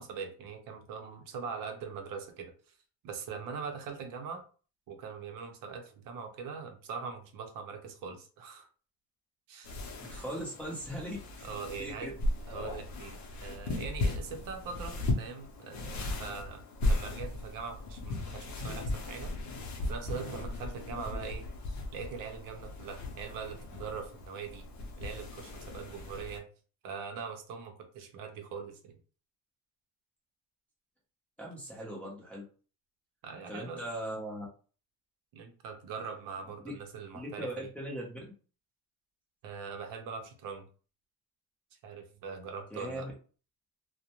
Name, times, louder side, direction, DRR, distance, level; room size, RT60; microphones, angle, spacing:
voice 1, 0.0-2.7 3.0-4.4 4.9-8.7 9.5-9.7 11.4-12.1 12.5-19.3 19.9-21.4 21.9-24.6 25.0-26.5 26.8-28.9 33.2-33.8 35.3-37.7 39.4-40.7 41.8-43.1, right 5 dB, 60° right, 4 dB, 0.7 m, -42 dB
sound 1, 9.6-26.4, left 2 dB, 50° left, 0.7 m, -37 dB
voice 2, 10.0-11.5 11.8-12.1 31.4-32.4 33.5-34.5 36.6-36.7 37.1-38.2 42.7-43.1, right 1 dB, 5° left, -5 dB, 0.6 m, -39 dB
2.4 x 2.1 x 2.9 m, 0.38 s
cardioid pair, 155°, 38 cm